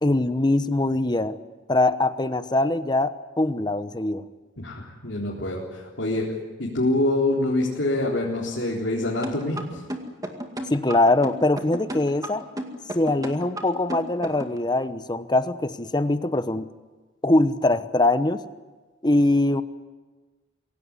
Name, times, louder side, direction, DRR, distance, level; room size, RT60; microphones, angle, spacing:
voice 1, 0.0-1.4 1.7-4.2 10.7-12.4 12.9-16.7 17.2-18.4 19.0-19.6, left 2 dB, 25° left, 12 dB, 1.0 m, -22 dB
voice 2, 4.6-6.3 6.6-9.8, left 1 dB, 65° left, -4 dB, 4.0 m, -25 dB
sound 1, 9.2-14.6, right 1 dB, 20° right, 2.1 m, -33 dB
25.0 x 17.0 x 9.7 m, 1.3 s
head